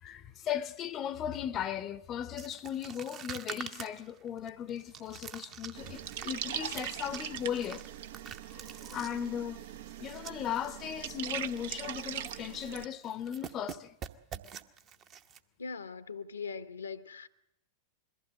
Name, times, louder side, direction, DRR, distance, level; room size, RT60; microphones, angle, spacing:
voice 1, 0.0-7.9 8.5-9.6 10.0-13.9, left 9 dB, 30° left, 0.7 m, -37 dB
sound 1, 2.4-10.7 11.0-11.1 11.4-11.7 12.0-12.8 13.0-15.4, right 8 dB, 35° right, 1.0 m, -46 dB
sound 2, 4.4-12.3, right 2 dB, 85° right, 5.5 m, -62 dB
sound 3, 5.7-12.9, right 10 dB, 55° right, 0.7 m, -41 dB
voice 2, 15.6-17.3, left 5 dB, 75° left, 0.9 m, -41 dB
22.0 x 15.0 x 8.0 m
figure-of-eight pair, 90°, 0 cm